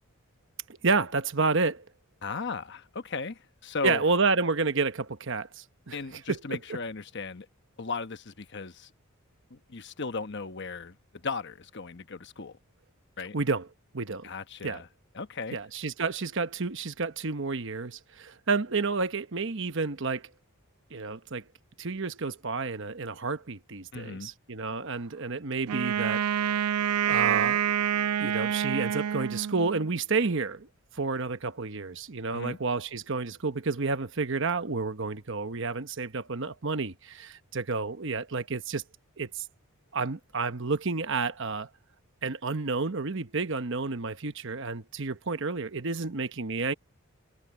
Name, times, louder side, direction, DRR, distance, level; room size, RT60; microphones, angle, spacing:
voice 1, 0.8-1.8 3.8-6.6 13.3-13.7 13.9-14.3 14.6-14.8 15.5-20.3 20.9-21.4 21.8-26.2 27.0-27.6 28.2-30.7 30.9-38.8 39.2-39.4 39.9-41.7 42.2-46.7, right 4 dB, 55° right, 1.0 m, -30 dB
voice 2, 2.2-4.0 5.9-7.5 7.8-8.9 9.5-12.6 13.2-13.4 14.2-14.9 15.1-15.6 23.9-24.3 32.3-32.6, left 4 dB, 50° left, 1.1 m, -36 dB
Wind instrument woodwind instrument, 25.7-29.9, right 9 dB, 85° right, 0.3 m, -27 dB
head